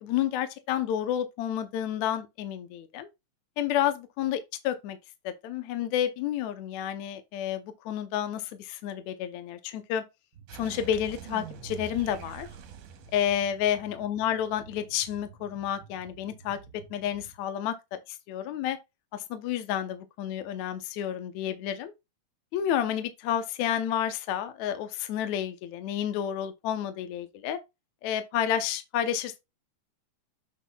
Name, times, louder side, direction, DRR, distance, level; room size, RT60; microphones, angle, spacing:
voice 1, 0.0-3.1 3.6-4.4 4.6-5.0 5.3-10.0 10.6-12.5 13.1-16.6 16.9-18.8 19.1-21.9 22.5-27.6 28.0-29.4, left 10 dB, 70° left, 1.9 m, -30 dB
sound 1, 10.3-17.4, right 7 dB, 50° right, 1.5 m, -52 dB
sound 2, 10.5-14.2, right 7 dB, 75° right, 2.5 m, -45 dB
8.3 x 5.9 x 2.3 m
omnidirectional pair, 3.7 m